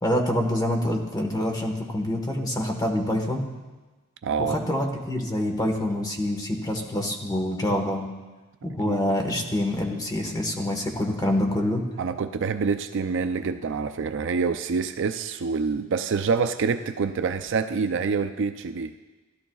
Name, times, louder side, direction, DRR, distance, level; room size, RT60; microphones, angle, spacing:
voice 1, 0.0-3.5 4.4-8.1 8.6-11.9, left 1 dB, 20° left, 2 dB, 1.3 m, -26 dB
voice 2, 4.2-4.6 8.8-9.0 12.0-18.9, right 5 dB, 60° right, 9 dB, 0.4 m, -26 dB
16.5 x 12.0 x 2.3 m, 1.2 s
head